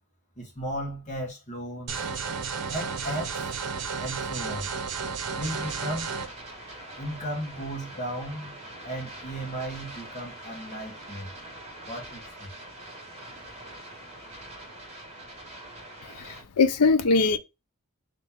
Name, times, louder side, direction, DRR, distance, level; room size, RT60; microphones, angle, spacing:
voice 1, 0.4-2.0 2.7-3.5 4.0-4.7 5.3-6.1 7.0-8.6 8.8-11.3 11.9-12.5, right 1 dB, 35° left, 1.5 m, -35 dB
sound 1, 1.9-6.3, right 5 dB, 90° right, 0.7 m, -32 dB
sound 2, 5.4-16.4, right 1 dB, 30° right, 1.5 m, -43 dB
voice 2, 16.2-17.4, left 4 dB, 85° left, 0.6 m, -21 dB
3.3 x 2.9 x 3.4 m
head